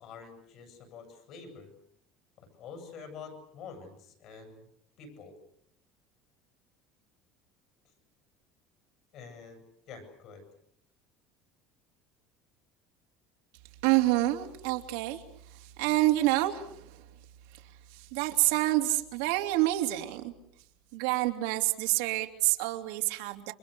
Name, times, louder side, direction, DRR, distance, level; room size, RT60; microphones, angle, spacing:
voice 1, 0.0-1.7 2.4-4.7 5.0-5.4 9.1-10.4, left 5 dB, 45° left, 7 dB, 7.8 m, -47 dB
voice 2, 13.8-15.2 15.5-17.0 17.5-17.6 17.9-20.3 20.9-23.5, right 17 dB, 90° right, 3 dB, 2.8 m, -28 dB
29.0 x 25.5 x 6.8 m, 0.70 s
cardioid pair, 175°, 0 cm